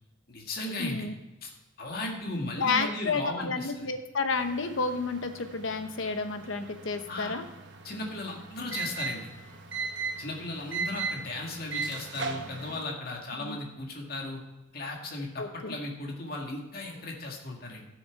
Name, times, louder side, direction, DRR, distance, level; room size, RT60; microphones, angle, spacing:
voice 1, 0.3-1.1 1.4-1.5 1.8-3.9 7.1-7.4 7.8-9.3 10.2-14.4 14.7-17.9, left 2 dB, 50° left, 0 dB, 2.0 m, -36 dB
voice 2, 0.8-1.1 2.6-7.4 13.4-13.6 15.4-15.7, left 4 dB, 70° left, 8 dB, 1.0 m, -31 dB
sound 1, 4.3-12.8, right 4 dB, 60° right, 1.3 m, -38 dB
12.5 x 7.1 x 4.7 m, 1.0 s
head